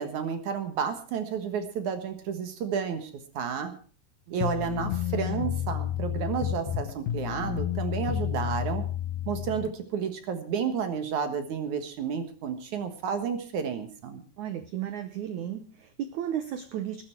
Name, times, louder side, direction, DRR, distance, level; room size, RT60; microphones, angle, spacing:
voice 1, 0.0-3.7 4.3-8.8 9.3-14.2, right 7 dB, 60° right, 8 dB, 2.4 m, -31 dB
sound 1, 4.4-9.7, left 11 dB, 75° left, 2.3 m, -31 dB
voice 2, 14.4-17.0, right 10 dB, 80° right, 10 dB, 1.7 m, -34 dB
20.5 x 10.0 x 4.5 m, 0.40 s
omnidirectional pair, 4.7 m